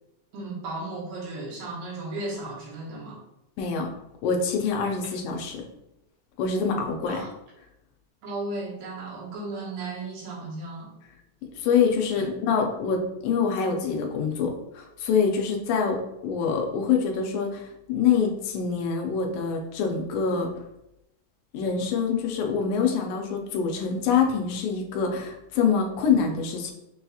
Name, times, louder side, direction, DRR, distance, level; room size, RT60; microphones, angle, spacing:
voice 1, 0.3-3.2 7.0-7.3 8.2-10.9 12.1-12.3, right 2 dB, 70° right, -5 dB, 2.7 m, -35 dB
voice 2, 3.6-3.9 4.2-5.6 6.4-7.2 11.6-20.5 21.5-26.7, left 6 dB, 80° left, 1 dB, 1.9 m, -25 dB
6.2 x 2.8 x 2.3 m, 0.87 s
omnidirectional pair, 3.9 m